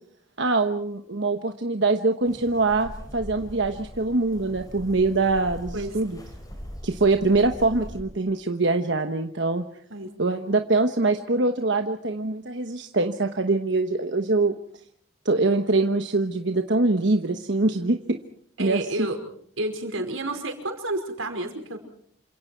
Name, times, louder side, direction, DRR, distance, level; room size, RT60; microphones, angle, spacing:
voice 1, 0.4-6.2 6.8-9.6 10.2-14.5 15.2-18.2 18.6-19.1, right 3 dB, 60° right, 6 dB, 1.2 m, -23 dB
sound 1, 2.3-8.0, equal, 20° left, 5.0 m, -41 dB
voice 2, 18.6-19.2 19.6-21.8, right 1 dB, 90° right, 5 dB, 5.2 m, -30 dB
28.5 x 26.5 x 4.6 m, 0.62 s
head